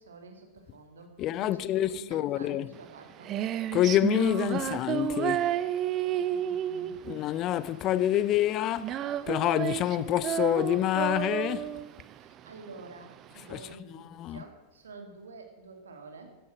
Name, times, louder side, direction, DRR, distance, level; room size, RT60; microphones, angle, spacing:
voice 1, 0.0-3.4 6.1-7.0 12.2-16.4, right 3 dB, 70° right, 2.4 m, -49 dB
voice 2, 1.2-2.7 3.7-5.5 7.1-9.0 9.3-11.8 13.5-13.6 14.1-14.4, left 13 dB, 35° left, 0.4 m, -27 dB
Female singing, 2.7-13.7, right 11 dB, 35° right, 0.7 m, -32 dB
15.0 x 11.5 x 6.0 m
figure-of-eight pair, 90°, 0 cm